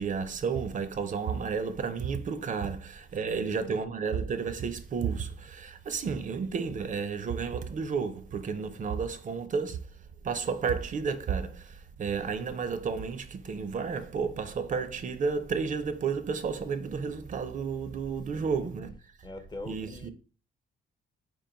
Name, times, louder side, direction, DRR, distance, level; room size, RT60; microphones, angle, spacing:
voice 1, 0.0-9.9 10.2-18.9 19.7-20.1, right 5 dB, 40° right, 0.5 m, -32 dB
voice 2, 3.2-3.8 18.3-18.7 19.2-20.1, left 2 dB, 20° left, 0.5 m, -44 dB
3.7 x 2.5 x 3.8 m
cardioid pair, 90°, 20 cm